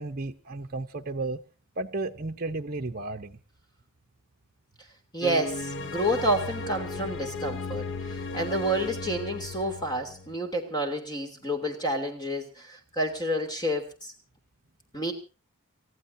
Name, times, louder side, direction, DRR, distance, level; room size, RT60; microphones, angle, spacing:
voice 1, 0.0-1.4 1.8-3.4, right 2 dB, 40° right, 3 dB, 0.9 m, -33 dB
voice 2, 5.1-14.1 14.9-15.1, equal, 20° left, 4 dB, 3.1 m, -29 dB
sound 1, 5.2-10.4, left 3 dB, 55° left, 0.9 m, -35 dB
30.0 x 15.0 x 2.8 m, 0.32 s
head